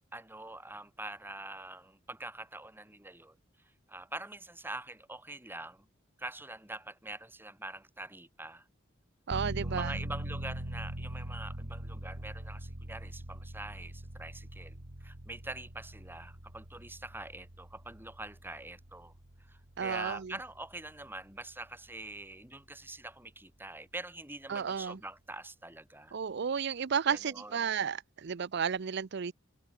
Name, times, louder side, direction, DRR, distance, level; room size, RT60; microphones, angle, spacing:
voice 1, 0.1-3.4 3.9-5.9 6.2-8.7 9.6-19.1 19.4-26.2 27.1-27.6, right 2 dB, 10° right, 4.9 m, -44 dB
voice 2, 9.3-10.0 19.8-20.3 24.5-25.0 26.1-29.3, right 7 dB, 55° right, 0.5 m, -33 dB
sound 1, 9.3-21.8 22.2-22.3, right 1 dB, 80° right, 2.7 m, -42 dB
head